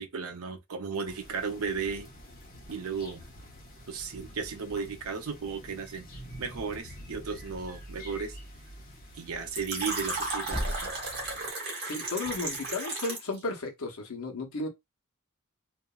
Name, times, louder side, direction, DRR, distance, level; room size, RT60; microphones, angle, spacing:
voice 1, 0.0-2.1 2.7-3.2 3.9-6.1 6.4-8.4 9.2-10.9, right 5 dB, 75° right, 0.6 m, -35 dB
sound 1, 1.0-11.5, equal, 40° left, 1.0 m, -47 dB
sound 2, 2.5-12.8, equal, ahead, 0.4 m, -44 dB
Fill (with liquid), 9.5-13.4, right 2 dB, 45° right, 1.1 m, -34 dB
voice 2, 11.8-14.7, left 3 dB, 75° left, 0.8 m, -34 dB
2.8 x 2.5 x 2.3 m
head